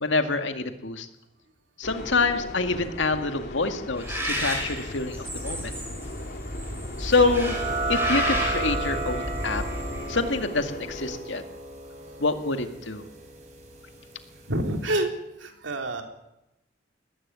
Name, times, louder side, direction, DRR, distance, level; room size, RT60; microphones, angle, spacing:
voice 1, 0.0-1.1 1.8-5.7 7.0-7.6 7.9-9.6 10.1-11.4 12.2-13.0, left 3 dB, 70° left, 7 dB, 2.1 m, -26 dB
sound 1, 1.8-11.2, left 1 dB, 55° left, 2.7 m, -40 dB
Bird, 4.0-10.4, equal, 15° right, 6.4 m, -32 dB
sound 2, 7.1-14.4, right 2 dB, 40° right, 5.8 m, -33 dB
voice 2, 14.5-15.1 15.4-16.0, right 1 dB, 70° right, 4 dB, 3.5 m, -27 dB
20.5 x 15.0 x 9.8 m, 0.89 s
head